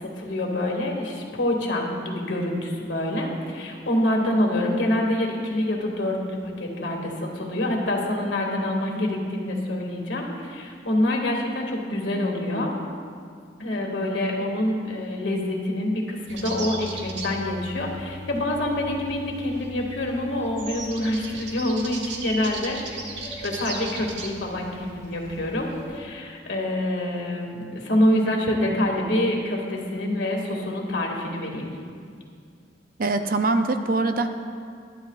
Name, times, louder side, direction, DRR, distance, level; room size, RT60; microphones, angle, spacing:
voice 1, 0.0-12.7 13.6-22.8 23.1-31.7, left 1 dB, 85° left, 0 dB, 2.1 m, -26 dB
sound 1, 16.3-26.0, right 2 dB, 80° right, 1.7 m, -37 dB
voice 2, 33.0-34.3, right 3 dB, 55° right, 7 dB, 0.7 m, -23 dB
20.0 x 12.0 x 2.4 m, 2.2 s
head